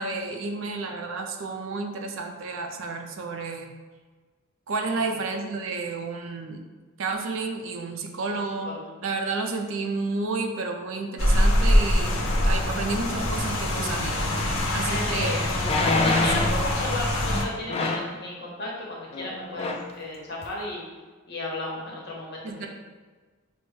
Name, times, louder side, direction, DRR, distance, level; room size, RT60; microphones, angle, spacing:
voice 1, 0.0-3.7 4.7-6.6 7.0-8.7 9.0-15.5 15.8-16.4 22.4-22.7, right 3 dB, 75° right, 4 dB, 0.5 m, -31 dB
voice 2, 8.1-8.8 14.8-20.8 21.3-22.7, left 1 dB, 50° left, -3 dB, 1.0 m, -34 dB
Rain, 11.2-17.4, left 1 dB, 75° left, 0.6 m, -24 dB
sound 1, 14.6-14.7 15.6-16.6 17.7-18.2 19.1-19.3 19.6-19.9 20.4-20.5, left 3 dB, 30° left, 0.3 m, -25 dB
6.0 x 2.1 x 3.1 m, 1.4 s
head